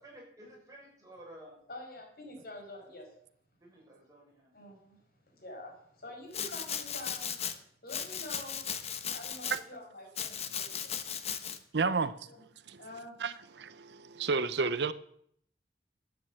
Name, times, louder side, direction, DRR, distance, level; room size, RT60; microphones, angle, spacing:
voice 1, 0.0-1.6 3.6-4.5, right 1 dB, 20° right, 6.7 m, -52 dB
voice 2, 1.7-3.1 4.5-5.0 5.3-7.4 7.8-8.6 9.1-10.9 12.2-12.4 12.8-13.2, left 1 dB, 60° left, 5.4 m, -47 dB
Domestic sounds home sounds, 6.3-7.5 7.9-9.6 10.2-11.6, left 8 dB, 35° left, 1.0 m, -37 dB
voice 3, 11.7-12.1 12.7-12.8 13.2-14.9, right 4 dB, 70° right, 0.6 m, -31 dB
12.5 x 9.4 x 7.6 m
head